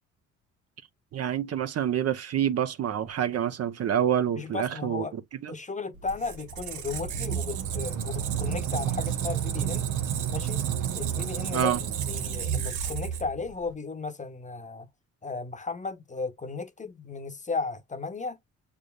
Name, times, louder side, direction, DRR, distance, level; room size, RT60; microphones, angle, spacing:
voice 1, 1.1-5.5 11.5-11.8, right 9 dB, 55° right, 0.7 m, -27 dB
voice 2, 4.4-5.1 5.5-9.9 10.3-10.6 10.9-14.9 15.2-18.4, left 4 dB, 25° left, 0.8 m, -35 dB
Squeak, 6.0-13.7, right 9 dB, 80° right, 0.9 m, -31 dB
6.6 x 3.4 x 2.3 m
cardioid pair, 90°, 30 cm